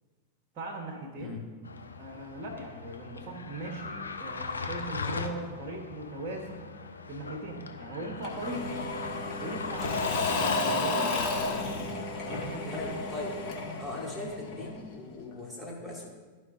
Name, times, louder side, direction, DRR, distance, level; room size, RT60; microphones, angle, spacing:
voice 1, 0.5-1.3 2.0-6.7 7.1-8.7 9.4-10.0 10.4-11.2 12.2-12.8, right 2 dB, 35° right, 0 dB, 1.3 m, -39 dB
sound 1, 1.6-11.0, left 4 dB, 75° left, 0.7 m, -39 dB
Engine / Mechanisms / Drill, 8.2-14.9, left 3 dB, 40° left, 1.6 m, -32 dB
voice 2, 12.7-13.4 13.8-16.1, left 2 dB, 5° left, -3 dB, 1.9 m, -39 dB
13.5 x 5.0 x 2.5 m, 1.5 s
figure-of-eight pair, 90°, 0 cm